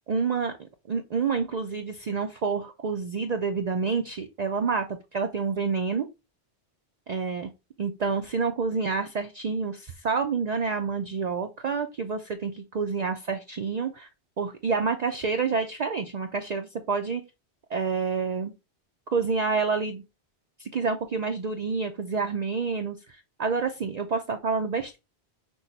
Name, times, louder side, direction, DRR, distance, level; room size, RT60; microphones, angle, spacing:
voice 1, 0.1-0.6 0.9-4.9 5.1-6.1 7.1-7.5 7.8-14.1 14.4-17.2 17.7-18.5 19.1-20.0 20.6-25.0, right 5 dB, 55° right, 5 dB, 0.5 m, -28 dB
6.1 x 2.1 x 3.9 m, 0.25 s
omnidirectional pair, 1.1 m